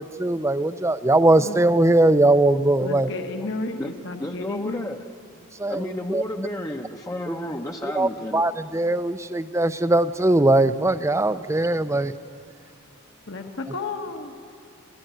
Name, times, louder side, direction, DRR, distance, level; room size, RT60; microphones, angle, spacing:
voice 1, 0.2-3.1 5.6-6.2 7.8-12.1, right 2 dB, 15° right, 13 dB, 0.5 m, -20 dB
voice 2, 2.8-4.9 13.3-14.3, left 3 dB, 55° left, 4 dB, 1.4 m, -32 dB
voice 3, 4.2-5.0 5.7-8.4, left 1 dB, 15° left, 2 dB, 0.8 m, -31 dB
25.5 x 15.0 x 9.1 m, 2.3 s
head